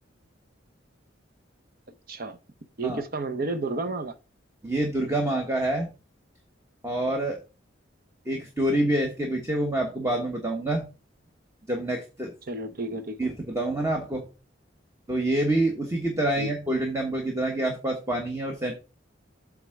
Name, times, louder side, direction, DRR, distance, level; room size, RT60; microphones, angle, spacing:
voice 1, 2.1-2.4 2.8-4.2 12.5-13.2 16.4-16.5, right 2 dB, 50° right, 0.9 m, -31 dB
voice 2, 4.6-5.9 6.8-7.4 8.2-10.8 11.7-12.3 13.2-14.2 15.1-18.7, right 1 dB, 15° right, 1.2 m, -27 dB
8.1 x 3.6 x 6.5 m
head